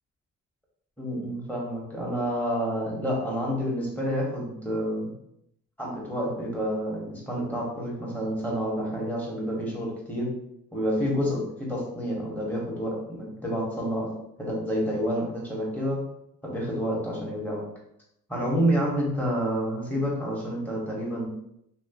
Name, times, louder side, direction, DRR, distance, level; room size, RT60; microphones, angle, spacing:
voice 1, 1.0-5.1 5.8-10.3 10.7-14.1 14.4-16.0 16.4-17.6 18.3-21.2, equal, 5° left, -4 dB, 1.3 m, -29 dB
3.0 x 2.9 x 2.9 m, 0.77 s
cardioid pair, 90°, 30 cm